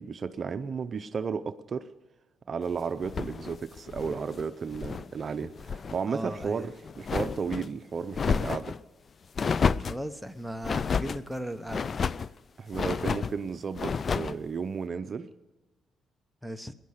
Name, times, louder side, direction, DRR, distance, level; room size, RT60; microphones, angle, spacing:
voice 1, 0.0-1.9 2.5-8.8 12.6-15.3, right 5 dB, 45° right, 0.7 m, -33 dB
sound 1, 3.0-5.1 5.4-6.0 6.3-7.7 8.1-8.8 9.3-10.0 10.6-11.2 11.7-12.3 12.7-13.3 13.7-14.4, left 5 dB, 45° left, 0.4 m, -30 dB
voice 2, 6.1-6.6 9.8-12.3 16.4-16.7, equal, ahead, 0.9 m, -37 dB
19.5 x 10.5 x 6.5 m
cardioid pair, 90°, 0 cm